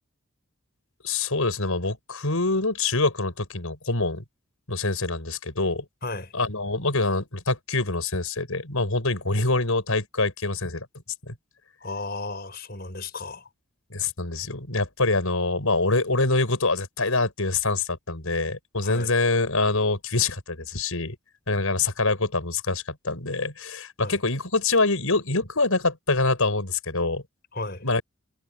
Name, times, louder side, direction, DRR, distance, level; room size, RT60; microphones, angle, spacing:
voice 1, 1.0-4.2 4.7-5.8 6.3-10.9 11.3-11.4 13.9-21.2 21.5-27.2 27.8-28.0, left 3 dB, 90° left, 6.1 m, -25 dB
voice 2, 6.0-6.3 11.8-13.5 18.8-19.1 24.0-24.2 27.5-27.9, left 3 dB, 45° left, 6.4 m, -34 dB
head